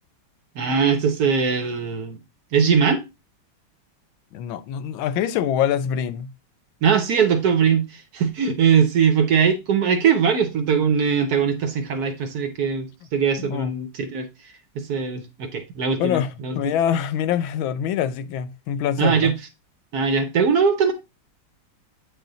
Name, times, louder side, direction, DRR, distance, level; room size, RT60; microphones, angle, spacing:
voice 1, 0.6-2.2 2.5-3.0 6.8-14.3 14.7-16.6 19.0-19.3 19.9-20.9, right 6 dB, 60° right, 1.1 m, -21 dB
voice 2, 4.3-6.3 13.4-13.8 16.0-19.3, left 9 dB, 85° left, 1.4 m, -25 dB
8.3 x 4.1 x 3.8 m
omnidirectional pair, 2.2 m